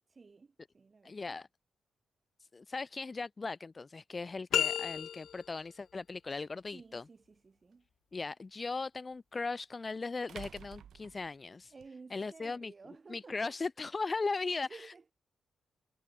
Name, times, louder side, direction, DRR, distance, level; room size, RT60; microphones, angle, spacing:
voice 1, 0.1-1.4 6.7-7.9 11.7-13.6 14.3-15.1, right 4 dB, 35° right, 5.7 m, -54 dB
voice 2, 1.0-1.5 2.5-7.0 8.1-11.7 12.1-12.7 13.1-14.9, left 4 dB, 30° left, 1.2 m, -38 dB
sound 1, 4.5-5.6, left 9 dB, 75° left, 0.8 m, -32 dB
sound 2, 6.4-6.5 9.1-9.2 10.3-11.9, right 9 dB, 70° right, 2.7 m, -51 dB
cardioid pair, 80°, 0 cm